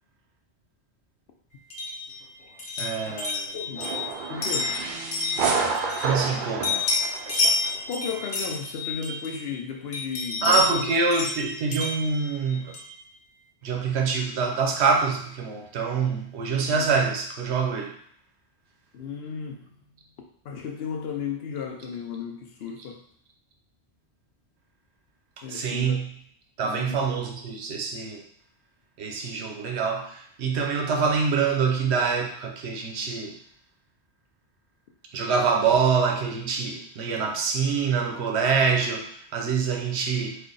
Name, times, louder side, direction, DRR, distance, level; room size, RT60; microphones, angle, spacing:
sound 1, 1.7-6.3 6.6-9.5 9.9-13.0, left 3 dB, 85° left, 1.1 m, -30 dB
voice 1, 2.8-3.6 6.0-6.8 10.4-12.8 13.6-17.9 25.4-26.1 26.6-28.2 29.0-33.3 35.1-40.4, right 5 dB, 80° right, 2 dB, 0.9 m, -25 dB
voice 2, 3.5-3.9 4.3-4.8 7.9-10.6 16.6-16.9 18.9-19.7 20.4-23.0 25.4-26.0 26.6-27.0, left 6 dB, 65° left, 2 dB, 0.8 m, -34 dB
sound 2, 3.8-7.8, right 4 dB, 60° right, 0.6 m, -29 dB
3.2 x 2.3 x 3.8 m, 0.64 s
omnidirectional pair, 1.1 m